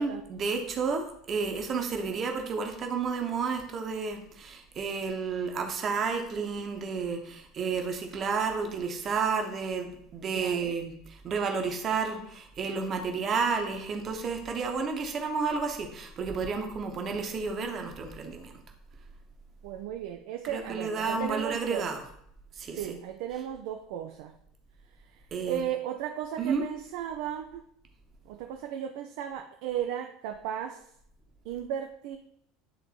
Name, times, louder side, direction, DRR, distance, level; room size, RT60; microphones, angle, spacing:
voice 1, 0.0-18.5 20.5-22.0 22.6-22.9 25.3-25.6 26.4-26.6, right 5 dB, 35° right, 3 dB, 1.0 m, -31 dB
voice 2, 10.3-10.7 19.6-21.9 22.7-24.4 25.1-27.7 28.3-30.9 31.4-32.2, right 10 dB, 55° right, 5 dB, 0.4 m, -35 dB
9.4 x 3.8 x 2.9 m, 0.70 s
figure-of-eight pair, 70°, 0 cm